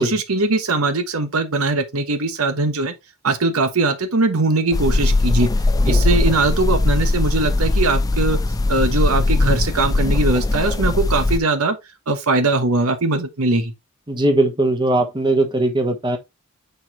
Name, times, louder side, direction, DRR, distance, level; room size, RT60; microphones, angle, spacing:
voice 1, 0.0-2.9 3.2-5.5 5.9-8.4 8.7-11.8 12.1-13.7, right 3 dB, 85° right, 1.1 m, -20 dB
sound 1, 4.7-11.4, left 2 dB, 15° left, 0.4 m, -19 dB
voice 2, 14.1-16.2, right 2 dB, 20° right, 1.1 m, -19 dB
6.8 x 4.4 x 3.1 m
head